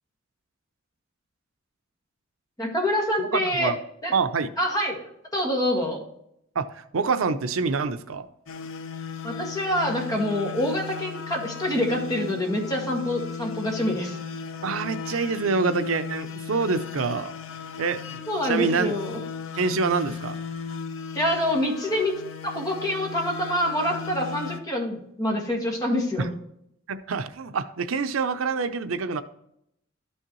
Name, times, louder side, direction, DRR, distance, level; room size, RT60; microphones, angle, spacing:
voice 1, 2.6-3.7 4.0-4.1 4.6-6.0 9.2-14.2 18.3-19.2 21.1-22.1 22.4-26.3, left 1 dB, 20° left, -1 dB, 1.9 m, -26 dB
voice 2, 3.2-3.8 4.1-4.5 6.5-8.3 14.6-17.4 17.8-18.9 19.5-20.4 26.2-26.3 26.9-29.2, right 4 dB, 80° right, 10 dB, 0.6 m, -26 dB
sound 1, 8.5-24.6, left 6 dB, 70° left, 0.6 m, -36 dB
12.5 x 6.4 x 3.1 m, 0.76 s
head